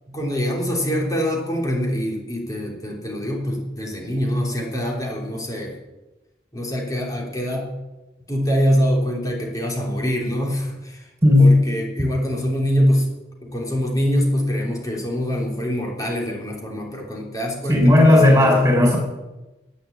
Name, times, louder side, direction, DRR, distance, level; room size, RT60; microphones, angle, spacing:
voice 1, 0.1-5.8 6.5-7.7 8.3-11.0 11.4-13.1 13.4-18.6, equal, 20° left, -1 dB, 3.4 m, -24 dB
voice 2, 11.2-11.6 17.7-19.0, left 1 dB, 15° right, 2 dB, 4.5 m, -13 dB
11.0 x 9.8 x 9.7 m, 1.0 s
head